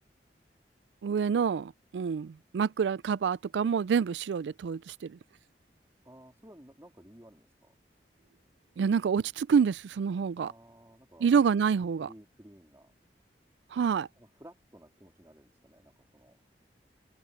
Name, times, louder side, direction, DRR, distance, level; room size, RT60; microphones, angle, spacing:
voice 1, 1.0-5.2 8.8-10.5 11.2-12.1 13.7-14.1, right 6 dB, 85° right, 0.3 m, -27 dB
voice 2, 6.0-7.7 10.4-11.3 12.0-12.9 14.2-16.4, equal, 15° right, 3.1 m, -54 dB
open air
head